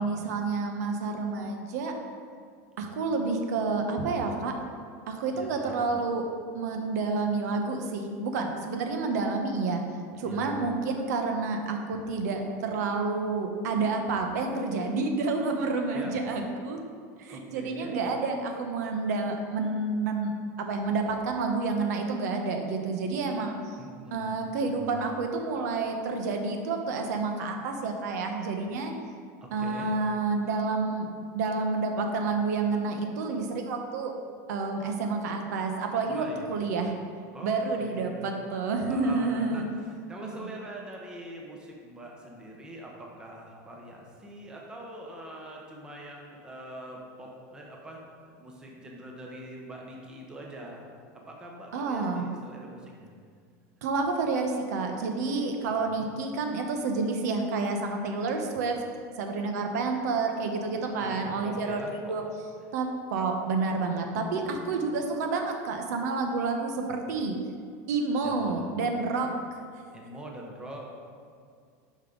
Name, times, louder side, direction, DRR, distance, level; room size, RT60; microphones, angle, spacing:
voice 1, 0.0-1.9 2.8-4.6 5.1-6.3 6.5-9.8 10.2-16.8 17.2-20.3 20.6-23.8 24.1-28.9 29.5-31.1 31.3-34.1 34.5-36.9 37.4-39.7 40.4-40.5 51.7-52.3 53.8-58.8 59.2-61.8 62.1-62.2 62.7-67.3 67.9-69.3, right 3 dB, 80° right, 4 dB, 1.0 m, -29 dB
voice 2, 5.3-5.8 10.2-10.5 15.9-16.2 17.3-18.0 23.8-24.4 24.7-25.0 29.4-29.9 36.1-36.6 37.3-38.4 38.9-39.6 40.1-48.0 48.4-50.9 51.3-53.1 55.9-56.1 61.0-62.2 68.2-68.7 69.9-70.8, right 1 dB, 10° right, -1 dB, 0.8 m, -43 dB
9.3 x 5.7 x 3.9 m, 2.1 s
supercardioid pair, 175°, 9 cm